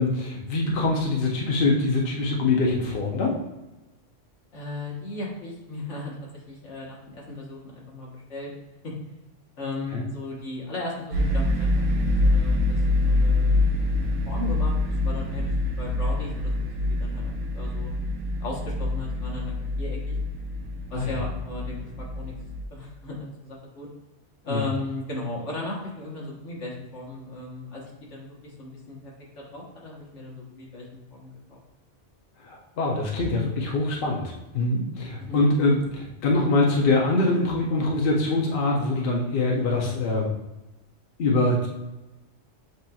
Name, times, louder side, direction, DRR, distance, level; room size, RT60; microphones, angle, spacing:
voice 1, 0.0-3.4 9.9-10.0 20.9-21.1 24.5-24.6 32.4-40.3 41.2-41.7, left 2 dB, 55° left, -1 dB, 0.9 m, -24 dB
voice 2, 4.5-6.1 6.5-8.5 8.8-8.9 9.6-13.6 13.8-16.5 16.8-17.9 18.4-20.1 20.9-22.3 22.7-23.9 24.4-31.6 35.2-35.5, left 2 dB, 75° left, -3 dB, 1.6 m, -36 dB
sound 1, 11.1-22.6, left 2 dB, 85° right, 1.0 m, -25 dB
7.8 x 2.9 x 2.3 m, 1.0 s
omnidirectional pair, 1.2 m